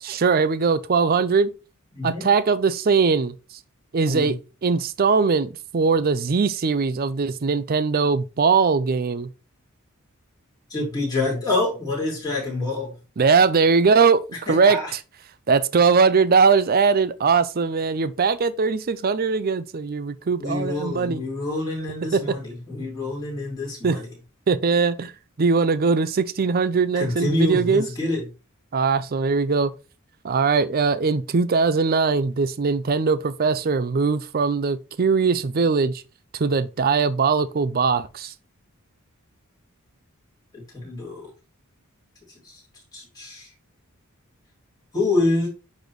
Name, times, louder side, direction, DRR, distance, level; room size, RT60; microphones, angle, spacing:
voice 1, 0.0-1.5 2.0-3.3 3.9-9.3 13.2-14.2 14.5-15.0 15.5-21.2 22.1-22.4 23.8-24.0 24.5-25.1 25.4-27.9 28.7-29.7 30.2-36.0 36.4-38.3, right 5 dB, 40° right, 0.5 m, -20 dB
voice 2, 1.9-2.3 4.1-4.4 10.7-12.9 14.5-14.9 20.4-24.1 26.9-28.3 40.5-41.3 42.4-42.6 42.9-43.5 44.9-45.5, left 2 dB, 20° left, 4.6 m, -26 dB
10.0 x 4.2 x 3.1 m
head